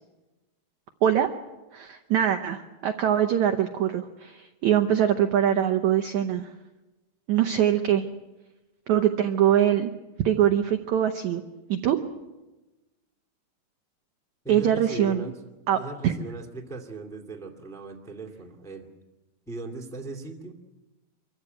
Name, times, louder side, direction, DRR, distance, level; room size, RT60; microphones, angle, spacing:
voice 1, 1.7-6.5 7.3-8.1 8.9-9.9 10.2-11.4 11.7-12.0 14.5-15.2 15.7-16.1, right 10 dB, 80° right, 7 dB, 1.6 m, -23 dB
voice 2, 14.4-15.3 15.7-18.9 19.5-20.6, right 3 dB, ahead, 1 dB, 1.2 m, -38 dB
25.0 x 15.0 x 9.5 m, 1.1 s
omnidirectional pair, 4.6 m